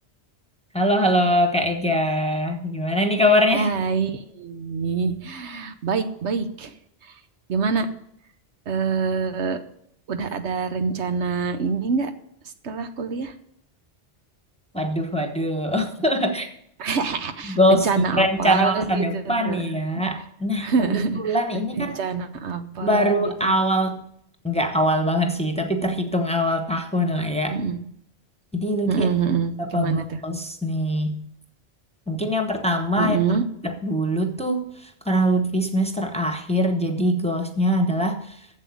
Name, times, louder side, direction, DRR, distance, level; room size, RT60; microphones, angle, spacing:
voice 1, 0.7-3.7 14.7-16.5 17.5-22.0 22.8-24.0 24.4-27.6 28.5-29.1 29.6-31.3 32.1-33.2 33.6-38.4, equal, 5° left, 4 dB, 1.0 m, -23 dB
voice 2, 3.5-6.7 7.0-7.1 7.5-7.9 8.7-9.6 10.1-12.1 12.6-13.3 16.8-19.8 20.6-21.4 21.8-23.5 27.5-27.8 28.9-30.2 33.0-33.4, right 5 dB, 80° right, 8 dB, 1.2 m, -25 dB
8.0 x 7.6 x 8.4 m, 0.70 s
omnidirectional pair, 1.1 m